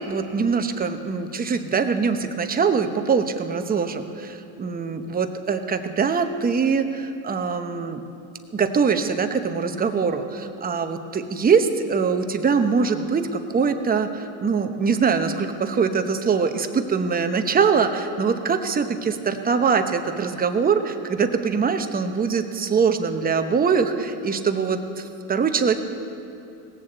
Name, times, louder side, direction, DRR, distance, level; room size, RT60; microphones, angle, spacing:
voice 1, 0.0-8.0 8.5-25.8, right 5 dB, 20° right, 7 dB, 1.0 m, -23 dB
18.0 x 7.2 x 7.9 m, 2.6 s
supercardioid pair, 110°, 41 cm